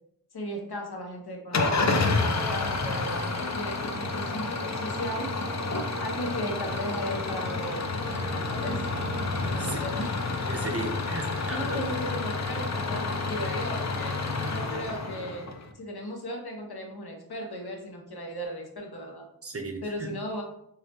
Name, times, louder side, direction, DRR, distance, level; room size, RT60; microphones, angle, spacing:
voice 1, 0.3-5.3 6.0-8.9 9.4-10.1 11.5-14.2 14.5-15.5 15.7-19.3 19.8-20.4, equal, 75° left, 1 dB, 0.8 m, -36 dB
Engine starting / Idling, 1.5-15.7, left 3 dB, 45° left, 0.5 m, -29 dB
voice 2, 10.5-11.8 19.4-20.1, right 2 dB, 40° right, 3 dB, 0.5 m, -35 dB
4.7 x 2.1 x 2.8 m, 0.76 s
wide cardioid pair, 55°, 38 cm